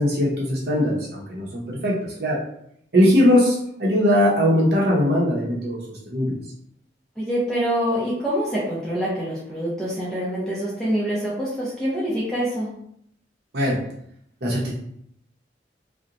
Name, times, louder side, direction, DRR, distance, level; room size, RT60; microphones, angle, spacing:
voice 1, 0.0-1.9 2.2-2.4 2.9-5.8 6.1-6.3 13.5-13.8 14.4-14.7, equal, 65° right, -5 dB, 0.7 m, -20 dB
voice 2, 7.2-12.7, equal, 5° left, -8 dB, 0.5 m, -25 dB
2.8 x 2.1 x 2.5 m, 0.70 s
head